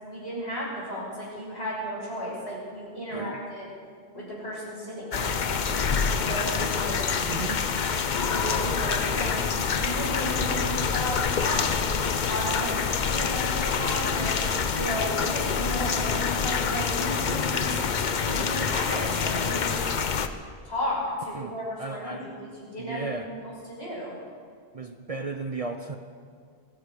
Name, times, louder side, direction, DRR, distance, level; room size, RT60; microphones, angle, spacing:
voice 1, 0.0-3.7 4.1-7.0 8.2-17.8 18.2-19.9 20.6-24.1, equal, 70° left, -6 dB, 6.5 m, -34 dB
voice 2, 3.1-3.4 7.2-7.6 21.3-21.5 21.8-22.3 22.8-23.3 24.7-26.0, right 3 dB, 40° right, 6 dB, 0.7 m, -34 dB
sound 1, 5.1-20.3, left 6 dB, 50° left, 0.8 m, -26 dB
19.0 x 15.0 x 5.1 m, 2.1 s
omnidirectional pair, 1.1 m